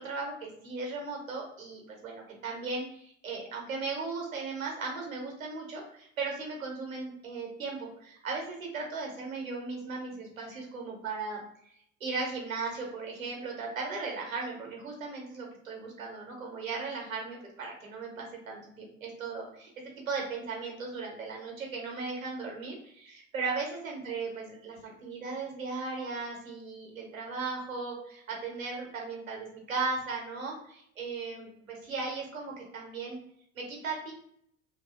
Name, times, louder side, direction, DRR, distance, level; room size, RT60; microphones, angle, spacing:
voice 1, 0.0-11.4 12.0-19.7 20.1-33.2 33.5-34.1, right 4 dB, 85° right, 0 dB, 0.9 m, -37 dB
2.6 x 2.4 x 2.4 m, 0.69 s
figure-of-eight pair, 60°, 39 cm